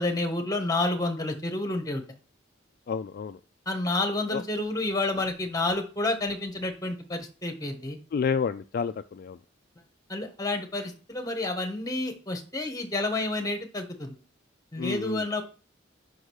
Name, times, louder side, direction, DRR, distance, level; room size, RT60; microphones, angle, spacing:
voice 1, 0.0-2.0 3.7-8.0 10.1-14.2 14.7-15.4, left 2 dB, 20° left, 5 dB, 1.3 m, -29 dB
voice 2, 2.9-3.4 4.3-4.4 8.1-9.4 14.8-15.2, left 6 dB, 50° left, 10 dB, 0.3 m, -30 dB
5.4 x 5.1 x 6.3 m, 0.36 s
head